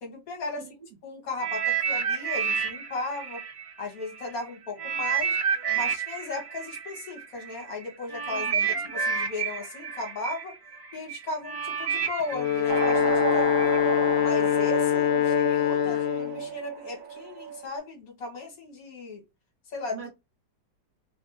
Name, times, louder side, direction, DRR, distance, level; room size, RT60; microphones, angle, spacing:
voice 1, 0.0-0.7 1.0-3.4 3.8-5.4 5.7-8.6 8.9-10.5 10.9-13.6 14.2-19.2 19.7-20.1, left 3 dB, 55° left, 1.6 m, -36 dB
sound 1, 1.4-4.3 4.8-13.8 14.5-14.6, right 6 dB, 45° right, 0.4 m, -30 dB
voice 2, 8.2-8.9 15.8-16.0 19.9-20.1, right 7 dB, 65° right, 1.4 m, -43 dB
Wind instrument woodwind instrument, 12.2-16.4, left 12 dB, 80° left, 1.2 m, -24 dB
sound 2, 12.7-17.7, right 8 dB, 80° right, 1.4 m, -31 dB
3.4 x 2.1 x 2.6 m
omnidirectional pair, 2.0 m